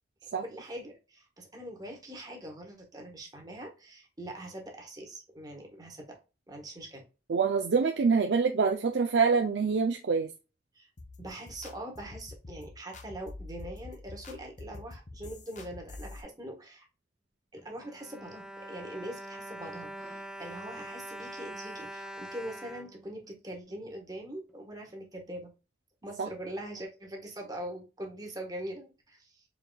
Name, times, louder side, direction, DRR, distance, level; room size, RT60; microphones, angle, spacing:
voice 1, 0.2-6.2 6.5-7.0 10.7-10.9 11.2-16.8 17.5-25.5 26.0-29.4, right 1 dB, 20° right, 1 dB, 1.3 m, -42 dB
voice 2, 7.3-10.3 26.2-26.3, right 5 dB, 75° right, 3 dB, 0.5 m, -25 dB
sound 1, 11.0-16.2, left 2 dB, 45° left, 0.7 m, -46 dB
Bowed string instrument, 17.6-23.8 24.5-24.6 24.9-25.0, right 1 dB, 5° right, 0.4 m, -44 dB
4.8 x 3.4 x 2.2 m, 0.30 s
head